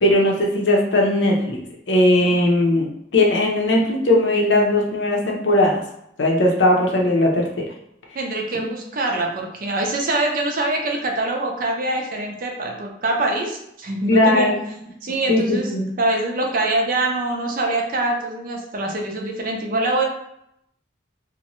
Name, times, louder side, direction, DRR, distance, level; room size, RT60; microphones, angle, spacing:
voice 1, 0.0-1.6 1.9-5.8 6.2-7.7 8.5-8.7 14.1-14.5 15.3-15.9, left 1 dB, 70° left, 0 dB, 0.6 m, -18 dB
voice 2, 8.1-14.5 15.0-15.7 16.0-20.0, right 2 dB, 50° right, 1 dB, 0.5 m, -24 dB
2.6 x 2.1 x 3.0 m, 0.77 s
head